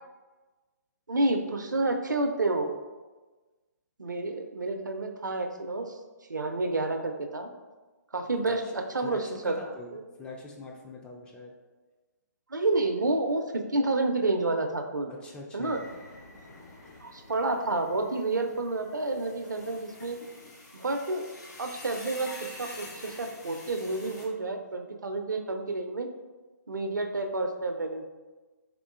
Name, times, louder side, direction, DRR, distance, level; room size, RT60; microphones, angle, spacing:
voice 1, 1.1-2.7 4.0-6.0 6.3-7.5 8.1-9.5 9.9-10.0 12.5-13.4 13.7-15.1 15.5-15.8 17.0-20.2 20.7-21.2 21.6-22.3 22.6-26.1 26.7-28.0, right 2 dB, 85° right, 5 dB, 0.4 m, -29 dB
voice 2, 9.0-11.5 15.1-15.9, left 2 dB, 10° left, -1 dB, 0.3 m, -44 dB
sound 1, 15.6-24.3, left 2 dB, 65° left, 1.1 m, -47 dB
3.6 x 3.6 x 2.4 m, 1.3 s
figure-of-eight pair, 135°, 10 cm